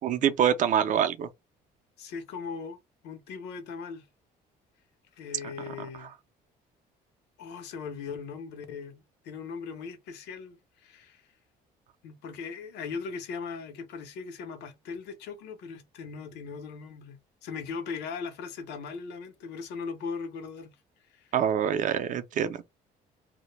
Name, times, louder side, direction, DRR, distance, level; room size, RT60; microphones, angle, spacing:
voice 1, 0.0-1.3 6.0-6.1 21.3-22.7, right 9 dB, 50° right, 0.4 m, -25 dB
voice 2, 2.0-2.8 3.0-4.1 5.2-6.1 7.4-11.3 12.0-20.8 21.1-21.3, left 5 dB, 85° left, 0.6 m, -39 dB
2.1 x 2.0 x 3.0 m
cardioid pair, 110°, 17 cm